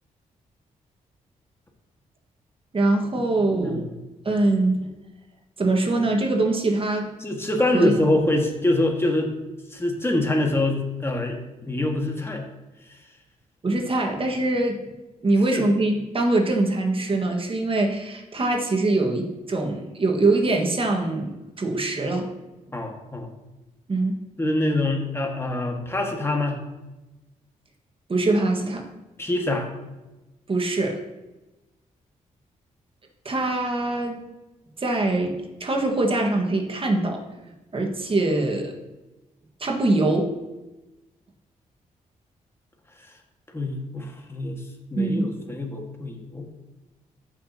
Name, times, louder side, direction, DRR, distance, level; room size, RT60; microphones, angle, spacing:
voice 1, 2.7-3.8 4.2-4.9 5.6-7.1 7.7-7.9 13.6-14.8 15.2-22.3 23.9-24.1 28.1-28.9 30.5-31.0 33.2-34.2 34.8-37.2 37.7-38.7 39.6-40.3 44.9-45.3, right 2 dB, 40° right, 1 dB, 1.6 m, -23 dB
voice 2, 7.2-9.3 9.7-12.4 15.5-15.6 22.7-23.3 24.4-26.6 29.2-29.7 43.5-44.6 44.9-46.4, left 1 dB, 15° left, 2 dB, 1.7 m, -25 dB
14.0 x 5.9 x 2.9 m, 1.0 s
cardioid pair, 65°, 14 cm